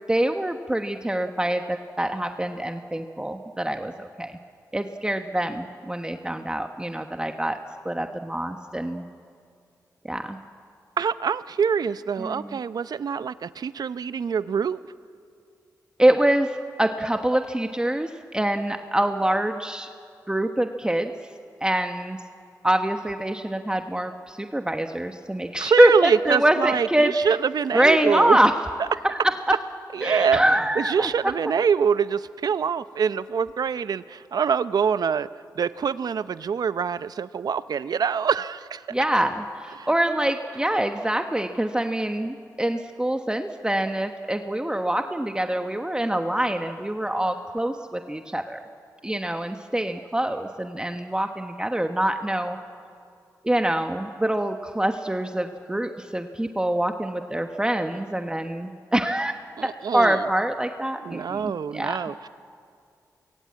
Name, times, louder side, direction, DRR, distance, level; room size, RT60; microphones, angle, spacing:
voice 1, 0.1-4.4 4.7-7.6 7.8-9.0 10.0-10.4 12.2-12.6 16.0-19.9 20.3-21.1 21.6-22.2 22.6-27.1 27.7-28.5 29.0-29.6 30.0-31.1 38.9-48.6 49.0-52.6 53.4-59.3 59.6-62.1, right 1 dB, 10° right, 6 dB, 1.2 m, -25 dB
voice 2, 11.0-14.8 25.6-28.4 29.9-30.4 30.8-35.3 35.6-38.8 39.8-39.9 59.6-60.2 61.0-62.3, right 6 dB, 70° right, 15 dB, 0.7 m, -25 dB
24.0 x 22.0 x 8.6 m, 2.3 s
cardioid pair, 50°, 7 cm